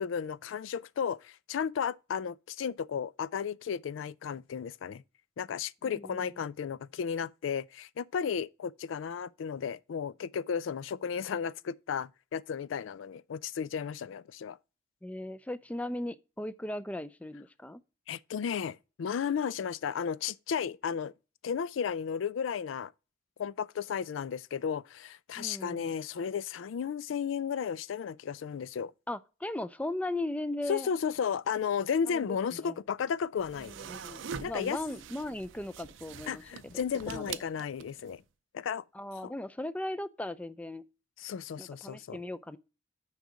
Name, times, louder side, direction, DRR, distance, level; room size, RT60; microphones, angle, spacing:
voice 1, 0.0-5.0 5.4-14.6 18.1-21.1 21.4-22.9 23.4-28.9 30.7-33.7 34.4-34.8 36.3-38.2 38.5-38.8 39.2-39.3 41.2-42.2, left 7 dB, 85° left, 0.4 m, -34 dB
voice 2, 5.8-6.3 15.0-17.8 25.4-25.9 29.1-30.9 32.1-32.8 33.6-37.4 38.9-40.8 41.6-42.6, left 1 dB, 5° left, 0.4 m, -38 dB
sound 1, 33.4-38.1, right 6 dB, 85° right, 0.6 m, -44 dB
6.5 x 4.8 x 6.2 m
head